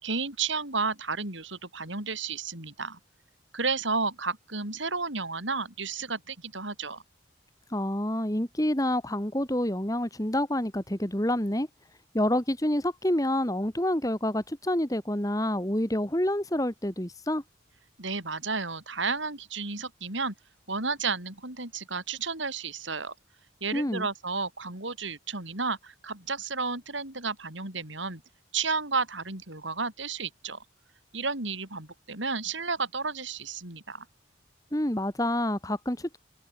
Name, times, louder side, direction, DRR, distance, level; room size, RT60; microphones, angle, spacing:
voice 1, 0.0-3.0 3.5-7.0 18.0-20.3 20.7-23.1 23.6-28.2 28.5-30.6 31.1-34.1, right 4 dB, 75° right, 7.0 m, -32 dB
voice 2, 7.7-11.7 12.1-17.4 23.7-24.1 34.7-36.2, left 1 dB, 20° left, 2.1 m, -28 dB
head